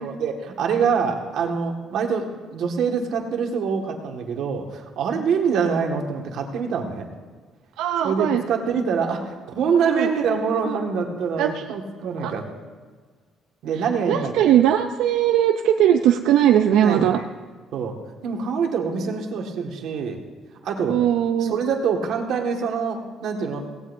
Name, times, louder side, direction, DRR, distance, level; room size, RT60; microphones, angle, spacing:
voice 1, 0.0-7.1 8.0-12.5 13.6-14.6 16.7-17.3 17.7-18.0 18.2-20.2 20.6-21.0 21.4-23.7, right 6 dB, 60° right, 2 dB, 1.8 m, -25 dB
voice 2, 7.8-8.4 10.0-10.1 11.4-11.6 12.2-12.3 14.1-17.2 20.9-21.5, right 10 dB, 85° right, 5 dB, 0.6 m, -19 dB
18.0 x 16.5 x 2.7 m, 1.5 s
cardioid pair, 165°, 0 cm